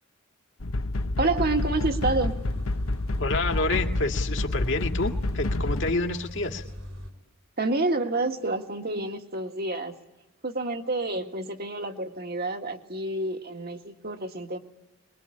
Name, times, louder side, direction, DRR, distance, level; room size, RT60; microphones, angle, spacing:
sound 1, 0.6-5.9, left 2 dB, 85° left, 1.0 m, -28 dB
voice 1, 1.2-2.4 7.6-9.9 10.4-14.6, right 2 dB, 50° right, 5 dB, 1.8 m, -28 dB
sound 2, 1.5-7.1, equal, 85° right, 5.4 m, -40 dB
voice 2, 3.2-6.6, left 2 dB, 60° left, 4 dB, 2.2 m, -28 dB
24.0 x 22.5 x 9.9 m, 1.0 s
head